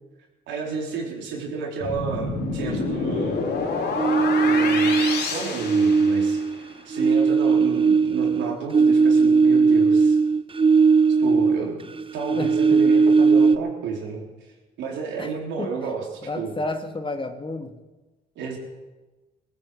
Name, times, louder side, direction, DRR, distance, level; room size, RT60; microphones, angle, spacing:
voice 1, 0.5-3.5 4.5-5.0 5.3-6.4 6.9-10.2 11.2-11.8 12.1-14.2 14.8-16.5 18.4-18.6, right 5 dB, 75° right, 0 dB, 4.1 m, -31 dB
sound 1, 1.8-6.6, left 4 dB, 65° left, 3.6 m, -28 dB
sound 2, 4.0-5.3 5.6-11.7 12.0-13.6, right 4 dB, 30° right, 0.9 m, -18 dB
voice 2, 16.2-17.7, left 2 dB, 25° left, 6 dB, 2.2 m, -30 dB
19.5 x 9.4 x 7.9 m, 1.2 s
supercardioid pair, 60°, 19 cm